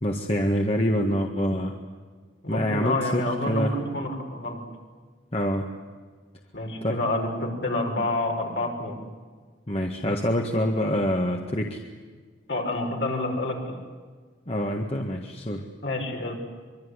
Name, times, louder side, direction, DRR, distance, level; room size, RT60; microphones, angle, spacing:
voice 1, 0.0-1.7 2.5-3.7 5.3-5.7 6.8-6.9 9.7-11.8 14.5-15.6, equal, 30° left, 2 dB, 1.7 m, -26 dB
voice 2, 2.4-4.6 6.5-9.0 12.5-13.7 15.8-16.3, left 2 dB, 55° left, 1 dB, 6.3 m, -28 dB
24.5 x 24.5 x 9.9 m, 1.5 s
head